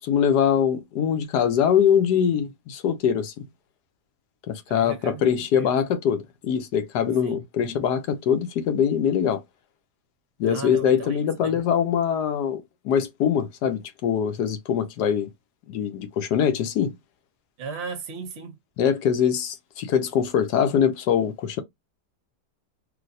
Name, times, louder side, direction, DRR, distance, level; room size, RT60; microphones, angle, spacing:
voice 1, 0.0-3.4 4.5-9.4 10.4-15.3 15.7-16.9 18.8-21.6, left 8 dB, 80° left, 1.2 m, -23 dB
voice 2, 4.7-5.8 7.2-7.4 10.4-11.6 17.6-18.6, right 4 dB, 55° right, 0.8 m, -36 dB
3.2 x 2.6 x 2.6 m
omnidirectional pair, 1.8 m